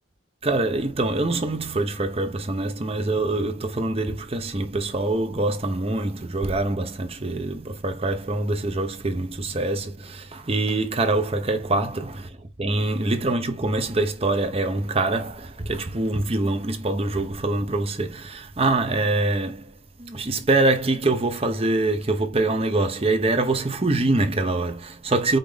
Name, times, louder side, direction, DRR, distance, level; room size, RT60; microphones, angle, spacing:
voice 1, 0.4-25.4, right 2 dB, 30° right, 0.8 m, -24 dB
5.2 x 2.8 x 3.5 m
head